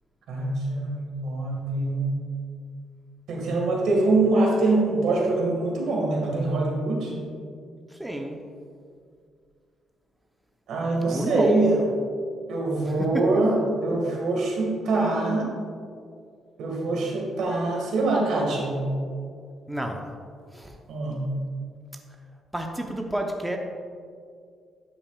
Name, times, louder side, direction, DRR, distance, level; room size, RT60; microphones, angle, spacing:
voice 1, 0.3-2.2 3.3-7.2 10.7-11.8 12.5-15.5 16.6-18.8 20.9-21.3, right 2 dB, 75° right, -2 dB, 1.8 m, -24 dB
voice 2, 7.9-8.4 11.1-11.6 12.9-13.3 19.7-20.0 20.5-20.7 22.5-23.6, right 1 dB, 5° right, 2 dB, 0.7 m, -30 dB
11.5 x 5.9 x 2.4 m, 2.2 s
cardioid pair, 90°, 0 cm